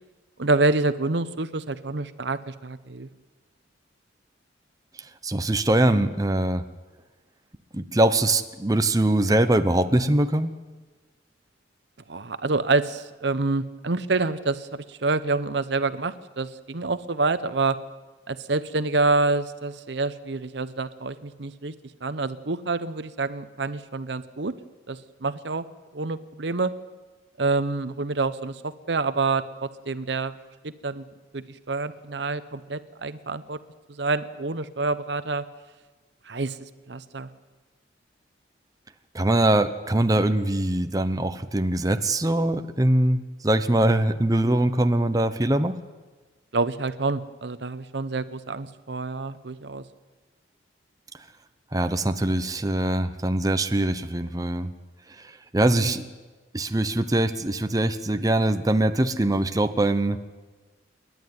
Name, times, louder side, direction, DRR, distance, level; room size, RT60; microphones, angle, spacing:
voice 1, 0.4-3.1 12.1-17.8 18.3-21.7 22.0-24.5 24.9-25.6 25.9-26.7 27.4-30.4 30.6-31.1 31.3-33.6 33.9-35.4 36.3-37.3 46.5-49.8 55.8-56.0, right 3 dB, 65° right, 13 dB, 0.8 m, -27 dB
voice 2, 5.2-6.6 7.7-10.5 39.1-45.7 51.7-54.7 55.5-56.0 56.5-60.2, right 1 dB, 20° right, 8 dB, 0.8 m, -22 dB
28.5 x 11.0 x 9.5 m, 1.3 s
head